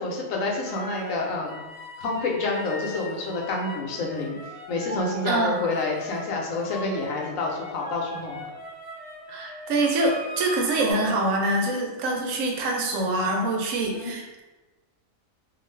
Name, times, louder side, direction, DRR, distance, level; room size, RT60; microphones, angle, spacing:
voice 1, 0.0-1.6 2.0-4.4 4.7-8.4 13.9-14.1, left 3 dB, 80° left, 0 dB, 1.0 m, -28 dB
sound 1, 0.6-6.2 6.6-10.9, equal, 25° left, 0.7 m, -40 dB
voice 2, 5.2-5.6 9.3-14.4, right 2 dB, 80° right, 1 dB, 1.0 m, -25 dB
2.4 x 2.4 x 3.2 m, 1.1 s
omnidirectional pair, 1.4 m